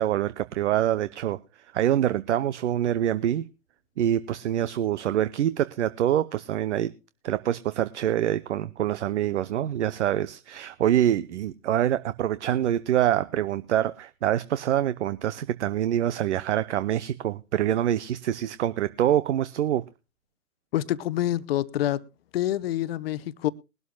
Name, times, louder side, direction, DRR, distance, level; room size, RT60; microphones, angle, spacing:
voice 1, 0.0-1.4 1.7-3.5 4.0-6.9 7.2-19.8, right 11 dB, 50° right, 0.8 m, -25 dB
voice 2, 20.7-22.0 22.3-23.5, left 13 dB, 40° left, 0.9 m, -27 dB
21.0 x 12.5 x 2.3 m
figure-of-eight pair, 120°, 45 cm